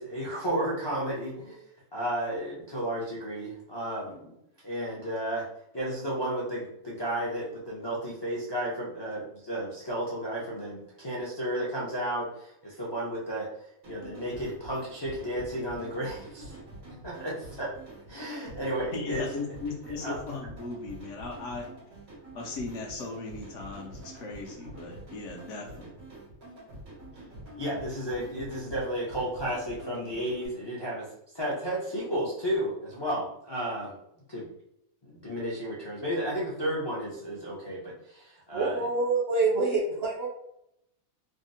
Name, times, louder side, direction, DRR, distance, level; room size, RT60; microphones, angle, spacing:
voice 1, 0.0-1.6 1.9-4.3 4.6-5.5 5.7-13.5 13.9-16.5 17.0-17.7 18.1-19.2 20.0-20.2 27.5-31.1 31.3-34.0 34.3-34.5 35.0-38.8, right 1 dB, 35° left, -7 dB, 0.4 m, -33 dB
sound 1, 13.8-30.5, right 1 dB, 90° right, 1.7 m, -46 dB
voice 2, 18.9-21.7 22.3-26.0, left 3 dB, 70° left, 0 dB, 0.9 m, -37 dB
voice 3, 38.5-40.3, right 3 dB, 55° right, -2 dB, 0.8 m, -26 dB
3.5 x 2.0 x 2.6 m, 0.77 s
omnidirectional pair, 1.5 m